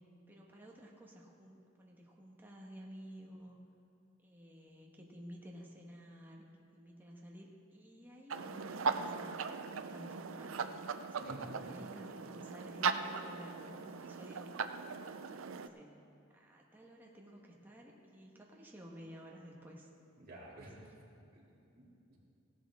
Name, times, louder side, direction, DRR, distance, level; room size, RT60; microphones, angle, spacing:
voice 1, 0.3-3.5 4.2-10.6 11.1-14.5 15.5-16.0 16.3-19.9 20.5-20.9, equal, 10° right, -2 dB, 1.4 m, -53 dB
sound 1, 8.3-15.7, right 5 dB, 85° right, 0.5 m, -39 dB
voice 2, 20.2-20.8 21.2-22.2, right 1 dB, 50° right, -5 dB, 2.8 m, -53 dB
16.5 x 11.5 x 3.6 m, 2.7 s
head